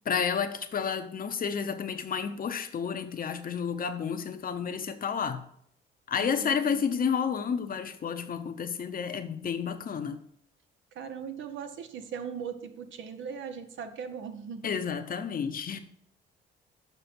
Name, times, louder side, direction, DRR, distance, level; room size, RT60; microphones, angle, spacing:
voice 1, 0.1-5.5 6.1-10.2 14.6-15.8, left 7 dB, 45° left, 0.8 m, -31 dB
voice 2, 6.2-6.8 10.9-14.6, right 7 dB, 75° right, 0.9 m, -39 dB
6.8 x 6.0 x 4.5 m
cardioid pair, 90°, 20 cm